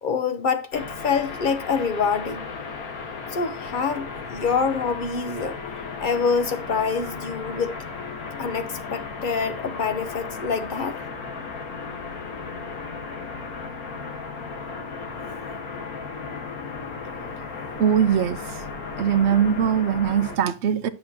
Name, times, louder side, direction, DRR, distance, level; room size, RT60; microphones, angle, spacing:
voice 1, 0.0-2.5 3.3-5.6 6.0-7.8 8.4-11.0, left 5 dB, 55° left, 0.5 m, -26 dB
sound 1, 0.7-20.4, left 4 dB, 85° left, 1.7 m, -35 dB
voice 2, 17.8-18.6 19.0-20.9, right 8 dB, 65° right, 0.7 m, -21 dB
9.1 x 7.9 x 2.7 m
omnidirectional pair, 1.5 m